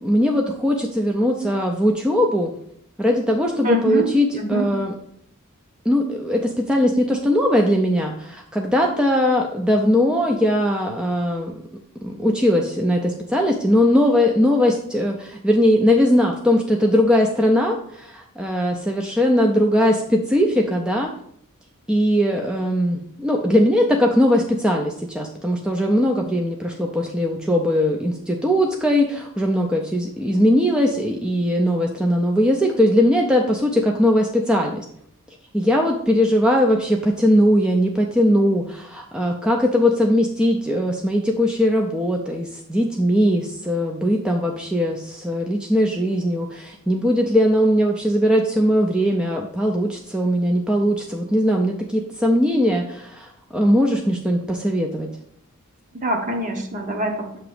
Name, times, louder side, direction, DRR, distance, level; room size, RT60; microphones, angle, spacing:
voice 1, 0.0-2.5 3.0-4.9 5.9-11.5 12.0-21.1 21.9-34.8 35.5-55.1, equal, 5° right, 0 dB, 0.4 m, -20 dB
voice 2, 3.6-4.1 4.5-4.7 56.0-57.4, right 1 dB, 35° right, 3 dB, 0.9 m, -24 dB
7.0 x 2.9 x 4.9 m, 0.69 s
head